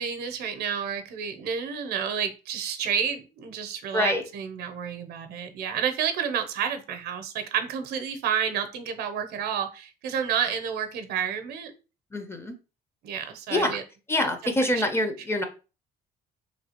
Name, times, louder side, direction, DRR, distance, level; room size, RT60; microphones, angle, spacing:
voice 1, 0.0-11.7 13.0-13.8 14.7-14.8, right 7 dB, 70° right, 8 dB, 0.6 m, -30 dB
voice 2, 3.9-4.2 12.1-12.5 13.5-13.8 14.1-15.4, left 1 dB, 15° left, 6 dB, 0.5 m, -25 dB
3.1 x 2.4 x 2.8 m, 0.32 s
cardioid pair, 110°, 17 cm